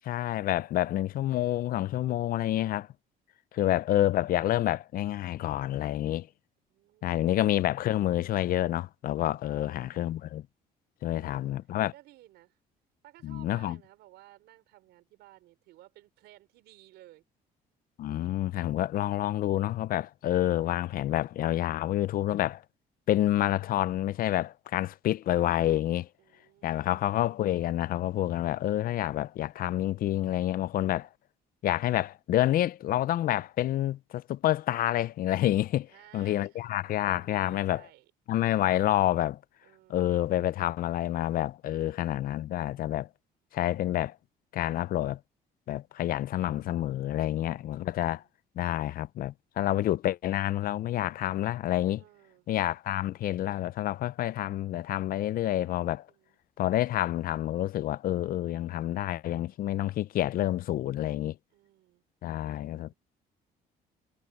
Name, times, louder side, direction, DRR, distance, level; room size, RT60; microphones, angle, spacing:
voice 1, 0.0-2.9 3.5-6.3 7.0-10.4 11.0-11.9 13.2-13.8 18.0-22.6 23.1-26.1 26.6-31.1 31.6-37.8 38.3-39.4 39.9-43.1 43.5-44.2 44.5-45.2 45.7-48.2 48.6-52.0 52.5-56.1 56.6-61.4 62.2-62.9, left 13 dB, 60° left, 0.5 m, -28 dB
voice 2, 6.7-7.5 9.5-10.1 11.1-11.6 11.9-12.6 13.0-17.2 26.2-27.2 35.9-36.6 37.2-38.1 39.6-40.2 41.8-42.2 47.3-48.3 51.9-52.5 56.1-56.4 58.4-59.0 61.5-62.0 62.4-63.0, right 16 dB, 85° right, 4.3 m, -57 dB
cardioid pair, 110°, 17 cm